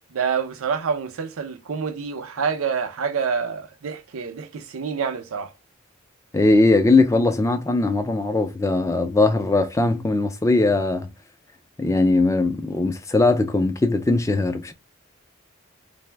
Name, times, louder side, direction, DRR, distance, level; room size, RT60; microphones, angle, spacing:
voice 1, 0.1-5.5, right 6 dB, 75° right, 0.5 m, -27 dB
voice 2, 6.3-11.1 11.8-14.7, left 2 dB, 15° left, 0.3 m, -20 dB
2.5 x 2.0 x 3.2 m
head